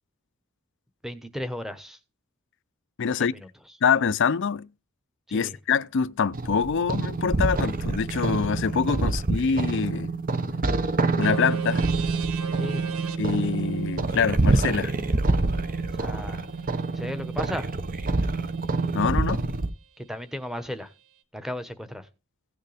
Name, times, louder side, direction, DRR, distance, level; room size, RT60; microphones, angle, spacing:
voice 1, 1.0-2.0 3.1-3.5 5.3-5.5 9.0-9.1 12.6-12.8 15.9-16.5 16.9-17.7 20.0-20.9 21.3-22.1, equal, ahead, 1.1 m, -35 dB
voice 2, 3.0-3.3 3.8-4.7 5.3-10.1 11.1-11.8 13.2-14.9 18.9-19.5, left 6 dB, 55° left, 0.5 m, -25 dB
sound 1, 6.3-19.7, right 3 dB, 40° right, 0.8 m, -26 dB
sound 2, 11.2-19.1, right 7 dB, 75° right, 1.1 m, -41 dB
16.5 x 6.6 x 3.4 m
head